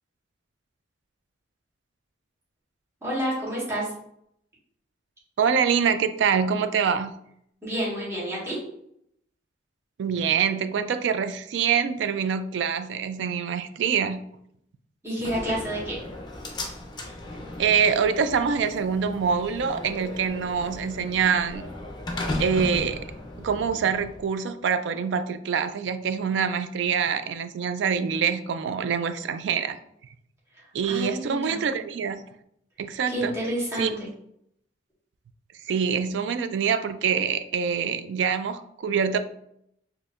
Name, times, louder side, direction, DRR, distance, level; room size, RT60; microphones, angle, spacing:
voice 1, 3.0-3.9 7.6-8.6 15.0-15.9 30.6-31.6 33.1-33.9, equal, 15° right, -8 dB, 1.5 m, -29 dB
voice 2, 5.4-7.1 10.0-14.2 17.6-21.7 22.4-23.0 23.4-29.8 30.7-32.2 32.8-33.3 33.8-33.9 35.7-39.2, right 6 dB, 65° right, 11 dB, 0.3 m, -25 dB
Slam, 15.2-24.2, left 2 dB, 25° left, 0.6 m, -36 dB
4.2 x 2.8 x 2.4 m, 0.72 s
head